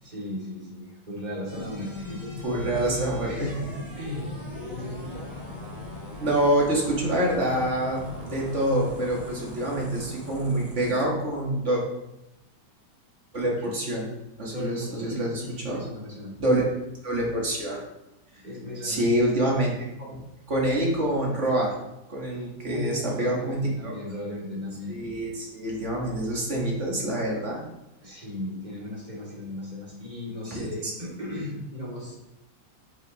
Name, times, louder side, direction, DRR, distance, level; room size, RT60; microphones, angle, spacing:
voice 1, 0.0-2.8 3.2-5.3 13.4-13.7 14.5-16.3 18.4-19.0 22.7-25.0 28.0-32.2, left 1 dB, 25° right, -6 dB, 2.7 m, -36 dB
sound 1, 1.5-11.0, left 2 dB, 25° left, 2.5 m, -40 dB
voice 2, 2.4-3.5 6.2-11.8 13.3-14.1 14.4-15.8 16.4-16.7 17.0-17.8 18.8-19.7 20.0-20.2 20.5-21.7 22.1-23.9 24.9-27.6 30.5-30.9, right 1 dB, 45° right, -2 dB, 1.8 m, -26 dB
7.6 x 6.1 x 3.0 m, 0.91 s
omnidirectional pair, 1.9 m